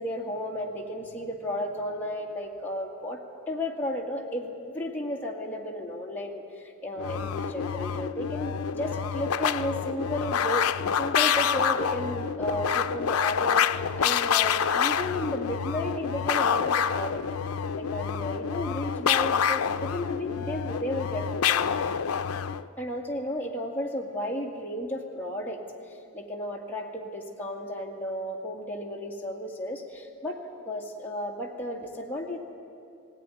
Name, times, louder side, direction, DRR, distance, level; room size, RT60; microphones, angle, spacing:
voice 1, 0.0-17.2 17.8-21.8 22.8-25.6 26.1-30.4 30.7-32.4, left 1 dB, 10° left, -1 dB, 2.1 m, -33 dB
sound 1, 7.0-22.6, left 7 dB, 85° left, 0.5 m, -27 dB
18.0 x 17.0 x 9.7 m, 2.7 s
head